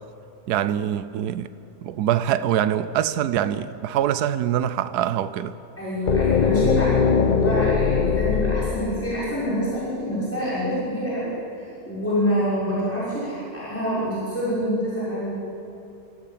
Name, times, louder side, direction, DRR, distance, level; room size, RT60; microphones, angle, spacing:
voice 1, 0.5-1.5 1.8-5.5, right 10 dB, 80° right, 1.2 m, -24 dB
voice 2, 5.8-15.3, equal, 10° left, 6.0 m, -26 dB
sound 1, 6.1-10.0, left 6 dB, 60° left, 0.5 m, -22 dB
29.0 x 14.5 x 7.5 m
omnidirectional pair, 1.7 m